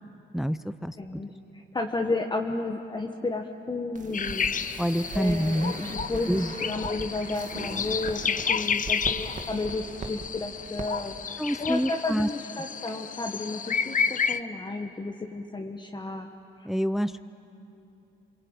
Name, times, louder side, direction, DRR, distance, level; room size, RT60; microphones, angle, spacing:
voice 1, 0.3-1.2 4.8-5.7 6.3-6.5 11.4-12.3 16.6-17.1, equal, ahead, 12 dB, 0.5 m, -27 dB
voice 2, 1.0-4.5 5.1-16.3, left 2 dB, 20° left, 2 dB, 1.5 m, -32 dB
sound 1, 4.0-10.3 10.6-10.9 11.1-11.2, right 4 dB, 40° right, 1.9 m, -40 dB
sound 2, 4.1-14.4, left 6 dB, 40° left, 0.9 m, -31 dB
28.5 x 22.5 x 9.0 m, 2.8 s
cardioid pair, 90°, 20 cm